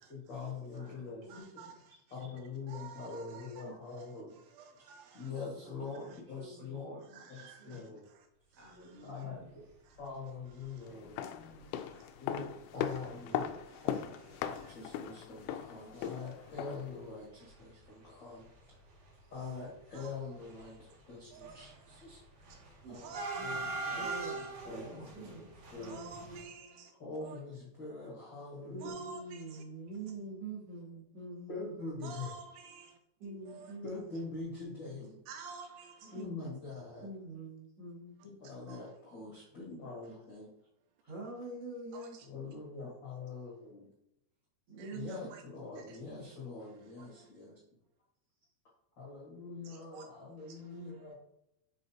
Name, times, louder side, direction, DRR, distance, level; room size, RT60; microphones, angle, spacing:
voice 1, 0.1-1.2 2.1-4.4 5.1-7.0 7.3-8.0 9.0-9.5 10.0-11.2 12.2-13.5 13.8-18.8 19.3-23.1 23.4-24.1 24.6-25.4 25.7-26.0 27.0-28.9 31.5-32.3 33.8-35.2 36.0-37.1 38.2-40.5 42.2-43.9 44.9-47.6 49.0-51.1, left 4 dB, 55° left, -4 dB, 1.2 m, -44 dB
voice 2, 0.7-1.8 2.2-2.3 4.7-4.8 5.5-8.1 8.5-9.5 10.8-11.8, equal, 30° right, -5 dB, 1.3 m, -57 dB
voice 3, 1.3-1.7 2.7-5.3 7.1-8.3 9.9-10.0 10.6-10.9 11.9-12.1 13.3-14.0 14.4-14.8 19.9-20.1 21.3-22.1 22.9-23.4 24.0-24.5 25.9-26.9 27.2-27.4 28.8-29.6 32.0-33.0 33.5-33.8 35.3-36.2 38.7-38.9 41.9-42.3 44.8-45.4 45.8-46.0 46.6-47.3 49.6-50.0 50.4-51.1, right 6 dB, 85° right, 5 dB, 2.4 m, -52 dB
sound 1, 10.4-10.7 11.1-11.2 11.4-11.6 12.4-12.5 12.9-13.1 13.4-13.5 13.9-16.1 16.3-17.0 17.3-26.4, right 3 dB, 65° right, 3.4 m, -43 dB
sound 2, 11.0-17.0 17.2-17.3, left 9 dB, 90° left, 2.1 m, -39 dB
voice 4, 23.3-26.8 28.6-31.7 33.2-34.1 34.8-35.0 36.1-36.6 37.0-38.2 41.1-42.2 44.7-45.3, right 2 dB, 45° right, -6 dB, 2.3 m, -45 dB
7.4 x 5.0 x 2.8 m, 0.81 s
omnidirectional pair, 4.9 m